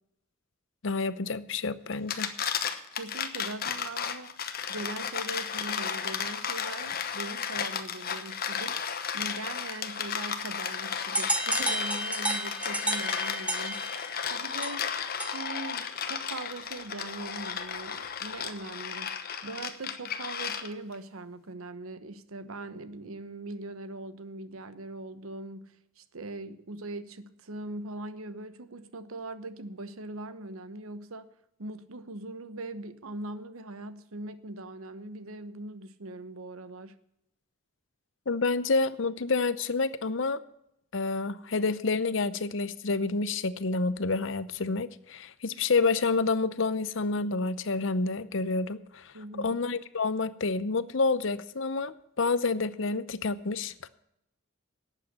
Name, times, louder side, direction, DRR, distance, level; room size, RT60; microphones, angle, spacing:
voice 1, 0.8-2.3 38.3-40.4 40.9-53.9, left 3 dB, 60° left, 0.7 m, -29 dB
sound 1, 1.9-20.9, left 7 dB, 45° left, 1.1 m, -34 dB
voice 2, 2.9-4.3 4.7-14.9 15.3-19.1 19.4-31.3 31.6-36.9 49.1-49.6, right 2 dB, 85° right, 1.0 m, -41 dB
sound 2, 11.1-15.7, right 1 dB, 5° right, 0.7 m, -32 dB
12.0 x 8.4 x 8.1 m
head